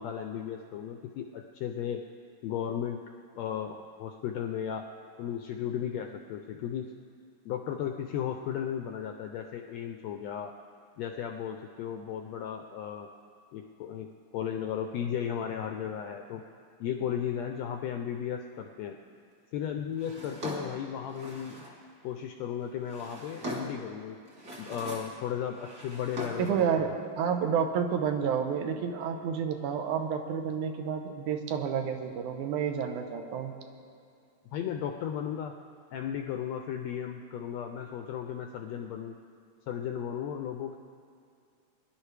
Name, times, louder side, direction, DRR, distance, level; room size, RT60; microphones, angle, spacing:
voice 1, 0.0-2.0 2.4-3.0 3.4-4.9 5.2-6.8 7.4-10.5 11.0-13.1 13.5-16.4 16.8-19.0 19.5-21.6 22.0-24.2 24.6-27.1 34.5-35.5 35.9-39.2 39.7-40.7, left 9 dB, 80° left, 5 dB, 1.5 m, -35 dB
Drawer open or close, 20.0-21.8 22.6-23.9 24.3-25.2 25.5-26.6, right 1 dB, 30° right, 1.8 m, -41 dB
voice 2, 26.4-26.9 27.2-33.5, right 7 dB, 80° right, 5 dB, 2.3 m, -30 dB
22.5 x 11.0 x 3.3 m, 2.4 s
omnidirectional pair, 3.6 m